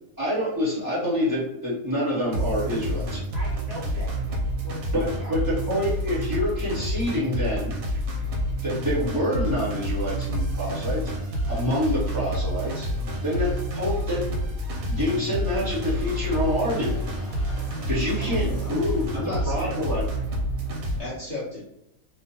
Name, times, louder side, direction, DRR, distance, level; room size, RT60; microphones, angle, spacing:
voice 1, 0.2-3.2 4.9-7.8 8.6-11.0 11.5-12.9 13.2-14.3 14.9-17.0 17.9-19.2 19.5-20.0, left 1 dB, 20° right, -9 dB, 0.8 m, -27 dB
sound 1, 2.3-21.0, equal, 80° right, 1.1 m, -28 dB
voice 2, 3.3-5.7 18.1-18.6, equal, 60° right, -5 dB, 0.7 m, -42 dB
sound 2, 15.9-21.1, left 2 dB, 55° left, 0.3 m, -45 dB
voice 3, 18.4-18.8 19.1-19.9 21.0-21.6, left 2 dB, 30° left, -9 dB, 1.1 m, -34 dB
2.5 x 2.1 x 2.8 m, 0.80 s
omnidirectional pair, 1.5 m